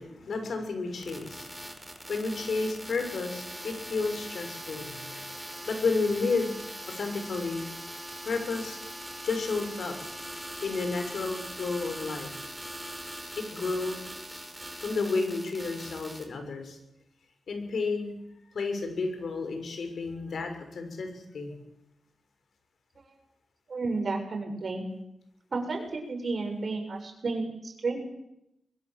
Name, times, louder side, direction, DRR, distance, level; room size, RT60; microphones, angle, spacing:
voice 1, 0.0-1.7 2.1-5.3 5.7-6.5 6.9-7.6 8.2-8.8 9.2-9.9 10.6-12.3 13.4-14.0 14.3-14.4 14.8-16.8 17.5-18.1 18.5-21.5, left 3 dB, 80° left, 5 dB, 6.4 m, -31 dB
sound 1, 1.0-16.2, right 1 dB, 10° right, 5.8 m, -41 dB
voice 2, 23.7-24.8 25.5-28.0, right 3 dB, 60° right, 3 dB, 7.1 m, -32 dB
23.0 x 21.5 x 7.7 m, 0.84 s
cardioid pair, 60°, 0 cm